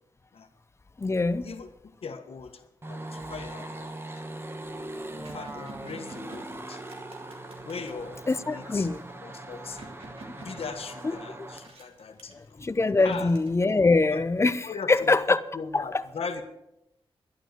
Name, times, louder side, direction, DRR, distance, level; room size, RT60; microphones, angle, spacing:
voice 1, 1.0-1.5 8.3-9.0 11.0-11.2 12.6-14.6 14.9-15.4 15.7-16.0, left 3 dB, 25° left, 0.7 m, -23 dB
voice 2, 2.0-2.6 2.9-4.0 5.2-6.8 7.6-8.9 9.2-9.9 10.4-12.6 13.0-13.4 13.8-14.3 14.6-16.4, left 5 dB, 75° left, 1.4 m, -39 dB
sound 1, 2.8-11.7, right 2 dB, 25° right, 1.2 m, -40 dB
sound 2, 3.9-4.0 4.4-4.5 4.7-8.0 8.9-11.2 11.6-12.5 12.9-14.0, right 2 dB, 75° right, 3.0 m, -50 dB
12.0 x 11.5 x 6.7 m
wide cardioid pair, 125°, 10 cm